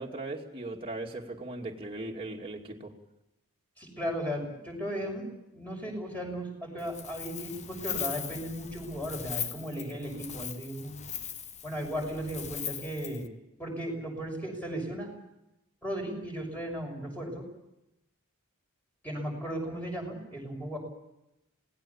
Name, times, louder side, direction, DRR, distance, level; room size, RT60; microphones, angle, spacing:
voice 1, 0.0-2.9, right 2 dB, 25° right, -1 dB, 2.5 m, -38 dB
voice 2, 3.8-11.0 11.6-13.3 13.6-15.1 15.8-17.5 19.0-20.8, equal, 5° left, 1 dB, 6.5 m, -36 dB
Wind, 6.8-13.3, left 8 dB, 30° left, 1.2 m, -39 dB
27.0 x 18.5 x 7.2 m, 0.88 s
head